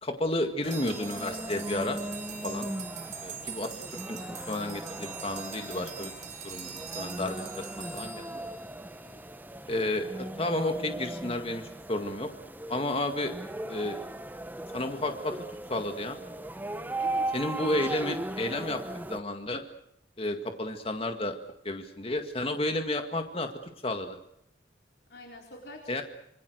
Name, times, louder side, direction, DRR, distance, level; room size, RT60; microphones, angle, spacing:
voice 1, 0.0-2.0 2.4-2.7 3.2-3.7 4.1-6.1 6.4-7.7 7.9-8.4 9.7-11.6 11.9-12.3 12.7-13.3 13.7-14.0 14.7-15.3 15.7-16.2 17.3-18.8 19.1-19.6 20.2-21.4 21.6-23.5 23.8-24.2 25.9-26.0, left 1 dB, 30° left, 6 dB, 2.0 m, -31 dB
sound 1, 0.6-19.2, right 1 dB, 10° right, 0.9 m, -38 dB
sound 2, 0.6-9.2, right 6 dB, 40° right, 3.9 m, -43 dB
voice 2, 2.4-2.7 9.0-9.6 17.0-17.2 17.5-17.7 25.1-26.0, left 1 dB, 65° left, 0 dB, 4.2 m, -48 dB
26.5 x 26.0 x 6.5 m, 0.75 s
head